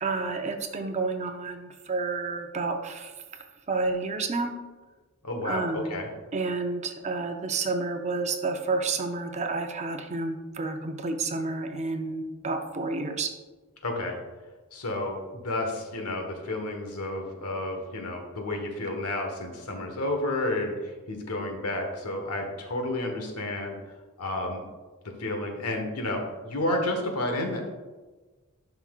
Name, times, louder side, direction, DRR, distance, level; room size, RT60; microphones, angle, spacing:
voice 1, 0.0-3.1 3.7-4.6 5.4-5.9 6.3-13.3, right 3 dB, 30° right, 5 dB, 0.6 m, -30 dB
voice 2, 5.2-6.1 13.8-14.2 14.7-23.7 24.2-24.6 25.2-27.7, left 1 dB, 90° left, 3 dB, 1.3 m, -31 dB
11.0 x 5.8 x 2.4 m, 1.3 s
head